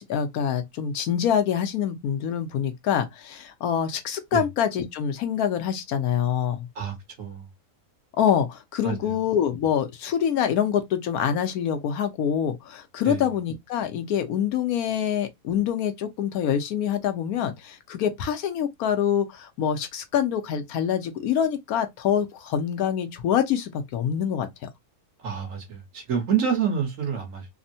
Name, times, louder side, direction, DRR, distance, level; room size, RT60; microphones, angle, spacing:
voice 1, 0.0-6.7 8.2-24.7, left 8 dB, 75° left, 1.1 m, -25 dB
voice 2, 6.7-7.5 8.8-9.2 13.0-13.3 25.2-27.5, right 7 dB, 60° right, 1.4 m, -28 dB
3.4 x 2.1 x 2.6 m
omnidirectional pair, 1.6 m